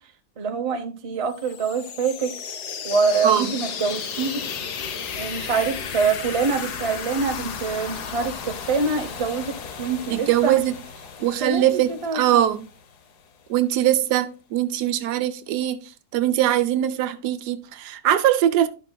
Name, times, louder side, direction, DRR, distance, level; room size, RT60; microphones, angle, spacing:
voice 1, 0.4-2.3 2.8-4.4 5.1-10.5 11.2-12.5, right 5 dB, 35° right, 0.6 m, -25 dB
sound 1, 1.3-13.0, left 6 dB, 80° left, 1.4 m, -34 dB
voice 2, 10.1-10.7 11.2-12.6 13.5-18.7, right 12 dB, 85° right, 1.2 m, -21 dB
11.5 x 6.1 x 2.2 m
omnidirectional pair, 1.7 m